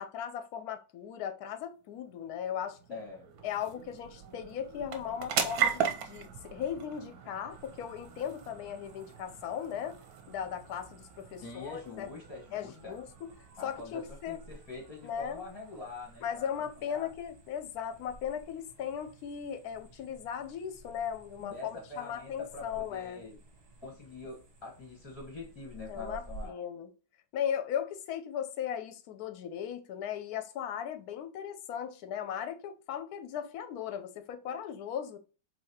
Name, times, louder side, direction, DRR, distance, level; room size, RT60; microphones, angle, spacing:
voice 1, 0.0-3.0 3.4-10.0 10.3-12.1 12.5-13.3 13.6-14.4 15.0-15.5 16.2-23.2 25.9-26.9 27.3-35.2, left 9 dB, 70° left, 1.0 m, -37 dB
sound 1, 1.9-16.8, right 8 dB, 65° right, 1.0 m, -39 dB
voice 2, 2.9-3.3 11.4-13.0 13.6-16.5 16.8-17.1 21.4-23.4 23.8-26.5, left 3 dB, 20° left, 0.7 m, -44 dB
sound 2, 7.5-26.5, right 1 dB, 45° right, 0.9 m, -54 dB
4.0 x 3.0 x 2.8 m
omnidirectional pair, 2.0 m